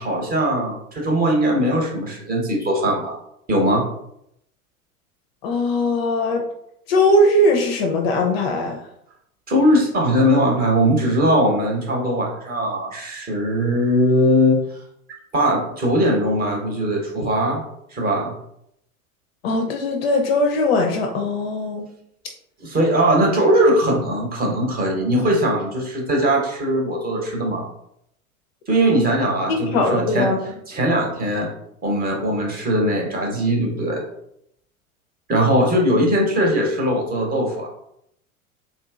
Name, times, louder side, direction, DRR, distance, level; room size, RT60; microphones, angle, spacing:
voice 1, 0.0-3.1 3.5-3.8 9.5-14.6 15.3-17.6 17.9-18.3 22.6-27.6 28.7-30.3 30.7-31.5 31.8-34.0 35.3-37.7, equal, 20° right, -1 dB, 0.8 m, -20 dB
voice 2, 5.4-6.4 6.9-8.8 19.4-21.9 29.5-30.4 35.4-35.5, left 1 dB, 45° left, 2 dB, 0.5 m, -20 dB
3.4 x 2.7 x 2.4 m, 0.76 s
figure-of-eight pair, 85°, 44 cm